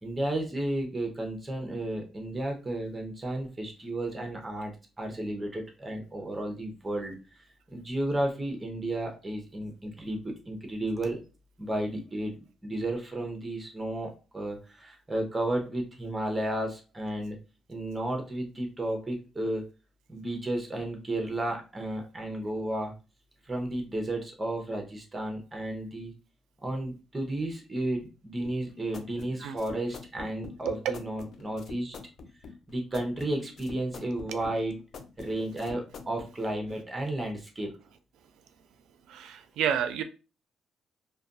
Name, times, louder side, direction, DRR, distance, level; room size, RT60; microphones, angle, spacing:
voice 1, 0.0-11.2 11.6-12.4 12.6-17.4 17.7-19.7 20.1-22.9 23.5-26.1 26.6-31.9 32.7-34.9 35.2-37.7, right 1 dB, 15° right, 0.8 m, -33 dB
sound 1, 28.4-36.3, left 4 dB, 60° left, 0.4 m, -45 dB
voice 2, 39.1-40.0, right 8 dB, 85° right, 0.3 m, -30 dB
2.4 x 2.2 x 2.5 m
cardioid pair, 90°, 0 cm